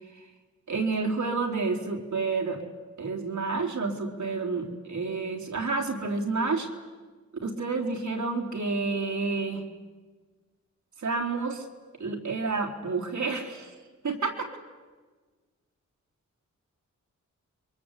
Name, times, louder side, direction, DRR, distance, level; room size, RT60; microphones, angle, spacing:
voice 1, 0.7-2.6 3.0-6.7 7.4-9.6 11.0-11.6 12.0-13.7 14.0-14.6, right 4 dB, 70° right, 1 dB, 3.8 m, -29 dB
28.5 x 23.0 x 8.4 m, 1.4 s
cardioid pair, 75°, 31 cm